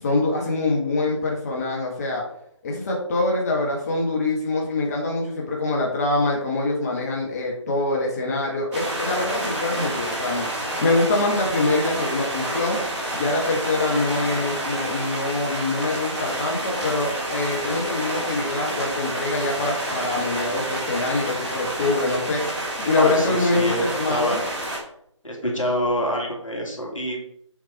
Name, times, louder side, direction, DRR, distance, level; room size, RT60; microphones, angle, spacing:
voice 1, 0.0-2.2 2.6-12.8 13.1-22.4 22.8-24.4, left 2 dB, 30° left, -2 dB, 1.3 m, -24 dB
sound 1, 8.7-24.8, right 1 dB, 10° right, 1.7 m, -29 dB
voice 2, 23.0-24.4 25.2-27.2, equal, 85° left, -1 dB, 2.7 m, -26 dB
7.3 x 4.5 x 4.2 m, 0.71 s
figure-of-eight pair, 150°, 16 cm